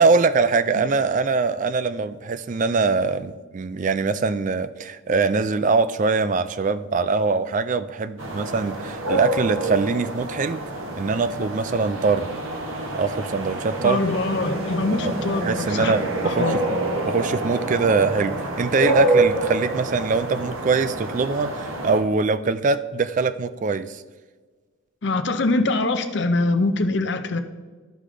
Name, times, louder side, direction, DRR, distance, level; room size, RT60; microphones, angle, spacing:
voice 1, 0.0-10.7 11.0-12.3 12.9-14.0 15.0-15.1 15.4-16.8 17.1-24.0, right 4 dB, 35° right, 13 dB, 0.3 m, -23 dB
sound 1, 8.2-22.0, right 2 dB, 70° right, 1.1 m, -27 dB
voice 2, 13.8-15.9 16.2-16.6 25.0-27.4, left 2 dB, 55° left, 9 dB, 0.6 m, -23 dB
13.0 x 5.0 x 3.8 m, 1.4 s
head